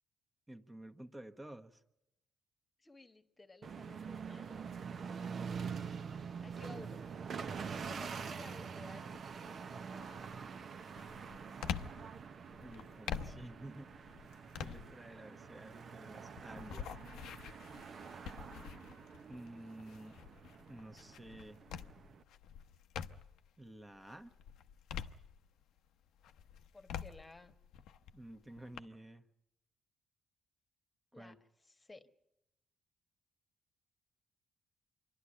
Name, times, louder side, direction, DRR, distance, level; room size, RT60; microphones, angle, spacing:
voice 1, 0.5-1.8 12.6-14.1 14.6-16.9 19.3-20.2 20.7-21.6 23.6-24.3 28.1-29.3 31.1-31.4, right 1 dB, 15° right, 6 dB, 1.2 m, -51 dB
voice 2, 2.8-4.7 6.4-7.0 7.8-10.3 26.7-27.5 31.1-31.4 31.7-32.0, left 3 dB, 20° left, 9 dB, 1.3 m, -55 dB
sound 1, 3.6-22.2, right 6 dB, 55° right, 0.8 m, -46 dB
sound 2, 9.1-9.5 10.0-23.5 23.9-25.8 26.2-28.8, left 8 dB, 85° left, 0.7 m, -47 dB
26.0 x 11.5 x 9.8 m, 0.87 s
cardioid pair, 90°, 0 cm